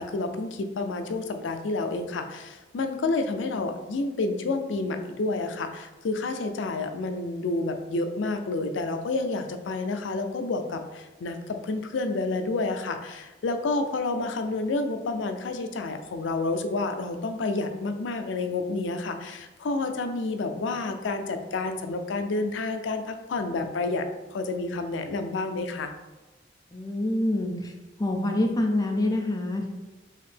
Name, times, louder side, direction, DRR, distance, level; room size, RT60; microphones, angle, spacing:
voice 1, 0.0-25.9, left 3 dB, 85° left, 7 dB, 0.4 m, -29 dB
voice 2, 26.7-27.7 28.0-29.7, left 1 dB, 20° left, 2 dB, 0.5 m, -26 dB
4.7 x 2.7 x 3.4 m, 1.1 s
head